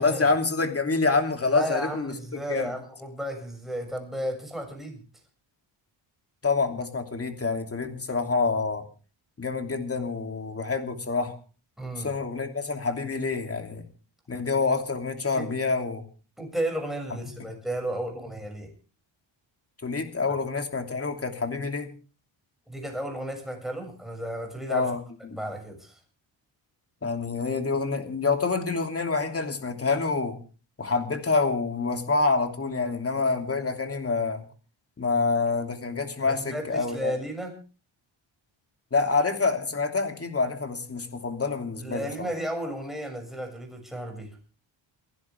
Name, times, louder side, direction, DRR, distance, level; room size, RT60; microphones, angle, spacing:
voice 1, 0.0-2.1 2.5-2.7 6.4-8.8 9.4-11.3 12.0-13.8 14.3-16.0 17.4-17.5 19.8-21.9 24.7-25.4 27.0-30.4 30.8-34.4 35.0-37.1 38.9-42.3, left 4 dB, 30° left, 5 dB, 3.0 m, -27 dB
voice 2, 1.5-5.0 11.8-12.1 15.3-15.5 16.4-18.7 22.7-24.9 25.3-26.0 36.2-37.5 41.8-44.3, right 1 dB, ahead, 2 dB, 6.9 m, -33 dB
28.5 x 11.0 x 3.6 m, 0.36 s
cardioid pair, 90°, 48 cm